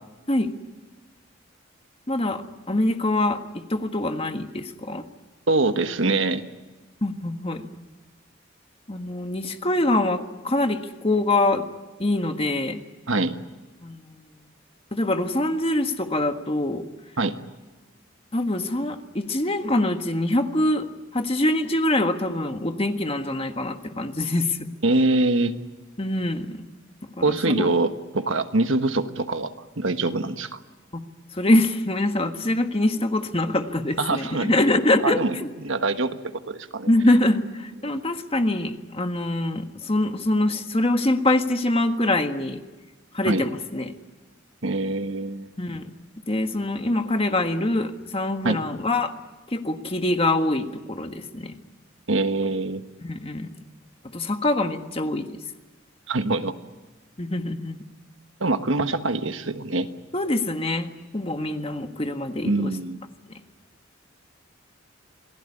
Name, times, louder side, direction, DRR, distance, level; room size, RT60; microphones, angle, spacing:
voice 1, 2.1-5.0 7.0-7.7 8.9-11.6 12.0-12.8 13.8-14.3 14.9-16.8 18.3-20.9 21.1-24.6 26.0-26.6 27.2-27.7 30.9-31.0 31.3-35.5 36.9-42.6 43.1-43.9 45.6-45.8 46.3-49.1 49.5-51.6 53.0-53.5 54.1-55.3 57.2-57.8 60.1-62.7, left 1 dB, 30° left, 7 dB, 1.5 m, -24 dB
voice 2, 5.5-6.4 13.1-13.4 17.2-17.3 24.8-25.5 27.2-30.6 34.0-34.5 35.0-35.3 35.6-36.9 43.2-43.4 44.6-45.5 48.4-48.6 52.1-52.8 56.1-56.5 58.4-59.9 62.4-63.0, right 2 dB, 75° right, 8 dB, 1.5 m, -24 dB
27.5 x 18.5 x 9.9 m, 1.2 s
head